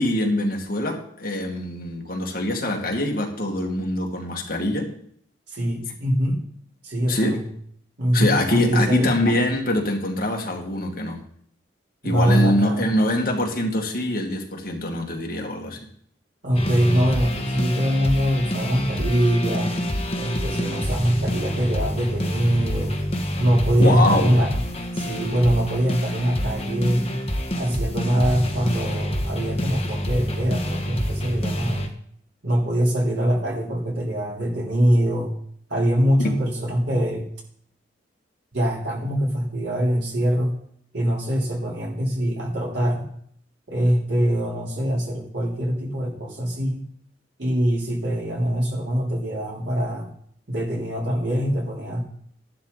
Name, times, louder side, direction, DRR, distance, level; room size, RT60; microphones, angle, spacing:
voice 1, 0.0-4.9 7.1-7.4 8.1-11.2 12.0-15.8 23.8-24.3 36.2-36.3, left 1 dB, 50° left, 1 dB, 2.1 m, -24 dB
voice 2, 5.5-6.4 6.8-7.4 8.0-9.1 12.0-12.9 16.4-19.8 20.2-23.0 23.4-24.5 24.9-27.1 27.6-31.9 32.4-35.3 35.7-37.3 38.5-40.5 40.9-43.1 43.7-46.8 47.4-50.1 50.5-52.0, equal, 70° right, -3 dB, 3.9 m, -23 dB
sound 1, 16.5-31.9, equal, 30° left, 1.5 m, -27 dB
13.5 x 11.0 x 4.1 m, 0.65 s
head